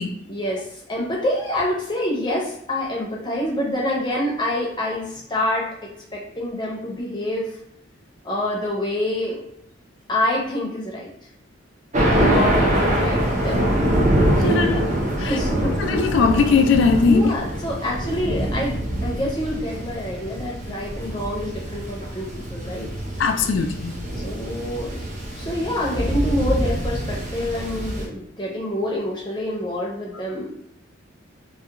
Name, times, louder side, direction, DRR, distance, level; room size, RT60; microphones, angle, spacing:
voice 1, 0.3-7.6 8.2-9.4 10.1-11.1 12.0-13.6 14.4-15.7 17.0-22.9 24.2-25.0 25.3-30.5, left 1 dB, 20° left, -2 dB, 0.6 m, -27 dB
Thunder, 11.9-28.1, right 1 dB, 35° right, 0.5 m, -24 dB
voice 2, 14.4-14.8 15.2-15.4 15.8-17.2 23.2-23.9, left 5 dB, 65° left, 5 dB, 0.3 m, -19 dB
2.3 x 2.2 x 2.8 m, 0.74 s
head